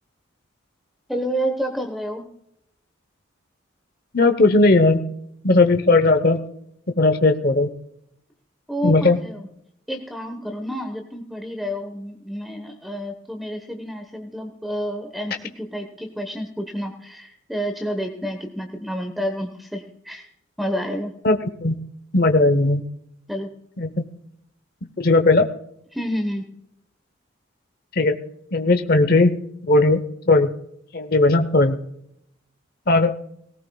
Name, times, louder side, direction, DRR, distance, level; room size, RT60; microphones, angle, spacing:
voice 1, 1.1-2.2 8.7-9.5 9.9-20.3 20.6-21.1 23.3-23.5 25.9-26.5, equal, ahead, 4 dB, 1.1 m, -29 dB
voice 2, 4.1-5.0 5.4-6.4 7.0-7.7 8.8-9.2 21.2-21.8 22.1-22.8 23.8-23.9 25.0-25.5 28.0-28.1 28.5-29.4 29.6-30.5 30.9-31.8 32.9-33.1, left 2 dB, 50° left, 8 dB, 0.9 m, -17 dB
19.0 x 17.5 x 2.3 m, 0.74 s
head